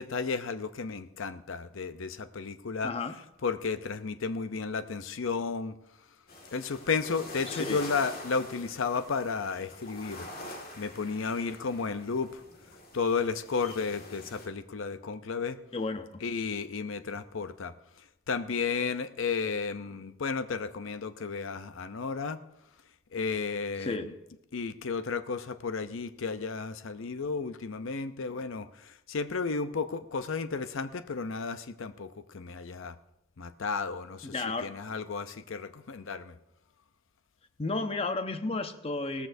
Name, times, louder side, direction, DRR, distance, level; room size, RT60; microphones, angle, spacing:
voice 1, 0.0-2.9 3.4-5.7 6.5-10.3 10.8-12.4 12.9-15.6 16.2-17.7 18.3-22.4 23.1-24.1 24.5-33.0 33.4-34.3 34.6-36.4, left 5 dB, 65° left, 11 dB, 0.6 m, -33 dB
voice 2, 2.8-3.1 7.5-7.8 15.7-16.2 23.8-24.1 34.2-34.7 37.6-39.3, left 3 dB, 30° left, 8 dB, 0.7 m, -32 dB
sound 1, 6.3-14.5, left 1 dB, 45° left, 1.9 m, -45 dB
17.5 x 14.0 x 2.7 m, 0.86 s
head